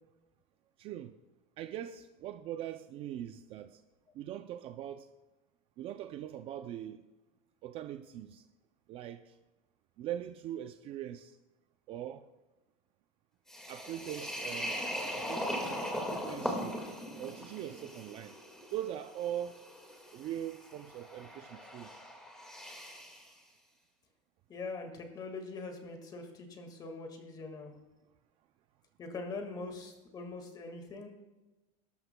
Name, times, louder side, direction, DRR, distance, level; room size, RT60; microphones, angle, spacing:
voice 1, 0.8-1.1 1.6-3.8 4.1-5.1 5.8-7.1 7.6-8.4 8.9-9.4 10.0-11.4 11.9-12.3 13.7-14.8 15.1-16.7 17.2-18.4 18.7-19.6 20.1-21.9, right 11 dB, 35° right, 0.4 m, -41 dB
sound 1, 13.5-23.3, equal, 5° left, 1.8 m, -40 dB
voice 2, 24.5-27.7 29.0-31.1, left 3 dB, 25° left, 1.8 m, -42 dB
18.0 x 13.0 x 2.2 m
supercardioid pair, 160°, 18 cm